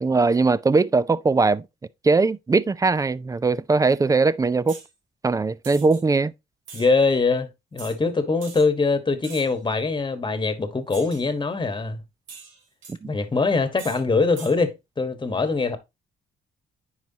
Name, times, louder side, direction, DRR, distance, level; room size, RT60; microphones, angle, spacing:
voice 1, 0.0-1.6 2.0-4.8 5.2-6.3 13.0-13.1, right 3 dB, 15° right, 0.4 m, -20 dB
sound 1, 4.7-4.9 5.6-6.0 6.7-6.9 7.8-8.0 8.4-8.7 9.2-9.6 10.9-11.3 12.3-13.0 13.8-14.0 14.4-14.6, right 5 dB, 75° right, 2.0 m, -42 dB
voice 2, 6.7-12.0 13.0-15.8, left 4 dB, 25° left, 1.3 m, -23 dB
9.4 x 4.7 x 2.8 m
cardioid pair, 90°, 20 cm